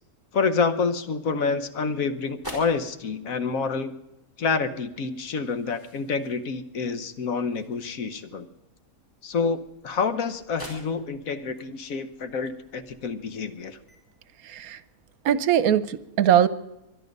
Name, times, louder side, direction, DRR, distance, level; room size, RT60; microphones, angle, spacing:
voice 1, 0.3-3.9 4.4-8.5 9.2-13.8, left 5 dB, 65° left, 10 dB, 1.4 m, -28 dB
sound 1, 1.5-14.0, right 1 dB, 15° left, 4.5 m, -49 dB
voice 2, 14.4-14.8 15.2-16.5, right 10 dB, 75° right, 16 dB, 1.2 m, -21 dB
24.5 x 10.5 x 5.3 m, 0.94 s
omnidirectional pair, 1.6 m